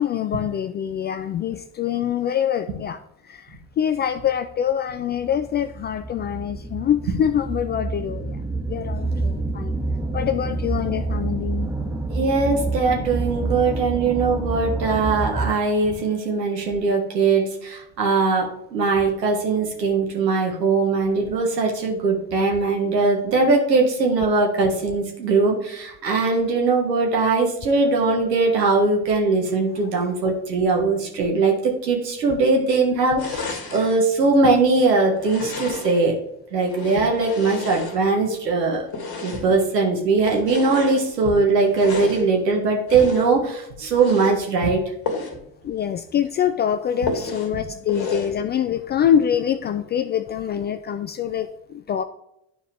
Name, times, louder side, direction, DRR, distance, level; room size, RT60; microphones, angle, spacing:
voice 1, 0.0-3.0 3.3-8.4 8.7-9.8 10.1-11.7 45.6-52.0, left 9 dB, 25° left, 11 dB, 0.3 m, -25 dB
sound 1, 4.4-4.5 5.1-15.8, right 3 dB, 5° right, 1.1 m, -28 dB
voice 2, 12.1-36.1 36.5-38.8 39.2-44.8 47.5-47.6, right 3 dB, 75° right, 0 dB, 1.8 m, -20 dB
sound 2, 33.2-34.0 35.2-36.1 36.6-38.3 38.9-39.6 40.2-41.1 41.7-42.3 42.9-43.4 43.9-44.4 45.0-45.4 45.8-45.9 46.2-46.3 47.1-47.5 47.9-48.4, left 4 dB, 45° left, 2.0 m, -32 dB
12.0 x 4.7 x 3.4 m, 0.79 s
figure-of-eight pair, 55°, 49 cm